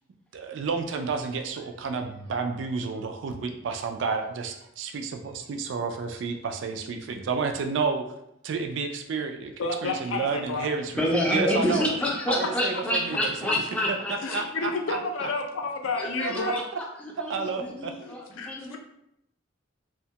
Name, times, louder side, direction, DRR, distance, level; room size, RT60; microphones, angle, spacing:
voice 1, 0.3-8.0 8.4-10.9 11.3-11.9 12.3-13.3 14.3-15.0 16.2-16.5 17.3-17.9, right 5 dB, 65° right, 6 dB, 0.3 m, -30 dB
voice 2, 9.6-10.7 13.5-13.6 14.2-16.6 17.5-17.6 18.0-18.8, left 3 dB, 75° left, 4 dB, 0.4 m, -31 dB
voice 3, 11.0-14.7 16.0-16.6 17.0-18.8, equal, 5° left, -2 dB, 0.4 m, -28 dB
2.8 x 2.2 x 2.7 m, 0.78 s
head